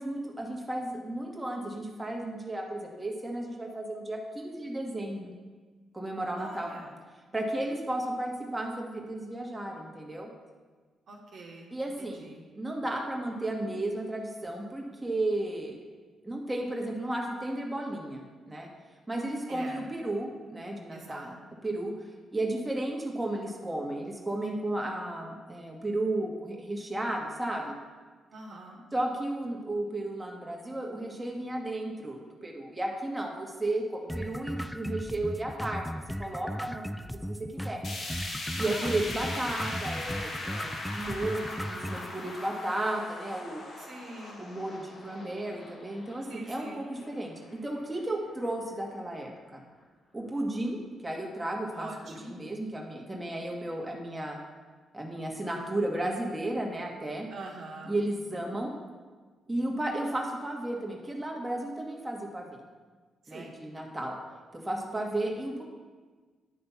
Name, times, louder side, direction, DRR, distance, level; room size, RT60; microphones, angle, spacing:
voice 1, 0.0-5.3 5.9-6.7 7.3-10.3 11.7-12.3 12.5-15.8 16.2-18.7 19.1-21.9 22.3-27.8 28.9-37.8 38.6-43.6 44.4-49.6 50.1-50.8 51.0-54.4 54.9-57.3 57.9-58.8 59.5-62.6 63.3-64.2 64.5-65.6, right 1 dB, 15° right, -1 dB, 1.5 m, -34 dB
voice 2, 6.4-7.0 11.1-11.7 12.0-12.4 19.5-19.9 20.9-21.3 28.3-28.8 38.6-38.9 43.8-44.4 46.3-46.8 51.7-52.3 57.3-58.0 63.2-63.5, right 2 dB, 70° right, 0 dB, 1.3 m, -44 dB
sound 1, 34.1-42.1, equal, ahead, 0.3 m, -37 dB
sound 2, 37.8-48.0 48.4-48.5 48.9-49.0 49.8-49.9, left 2 dB, 60° left, 1.4 m, -40 dB
9.6 x 3.3 x 5.7 m, 1.4 s
supercardioid pair, 55°, 0 cm